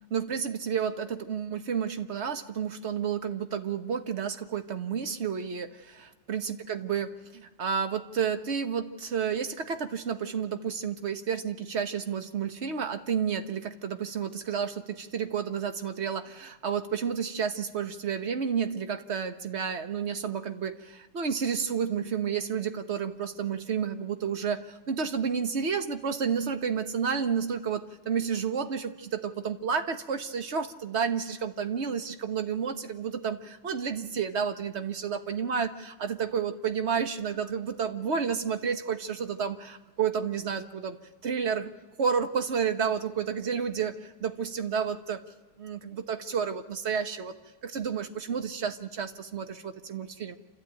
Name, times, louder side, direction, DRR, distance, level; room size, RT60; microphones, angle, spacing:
voice 1, 0.1-41.0 41.2-41.7 42.0-45.2 45.6-47.4 47.6-50.4, right 7 dB, 45° right, 8 dB, 1.3 m, -31 dB
28.0 x 13.5 x 9.1 m, 1.3 s
omnidirectional pair, 1.7 m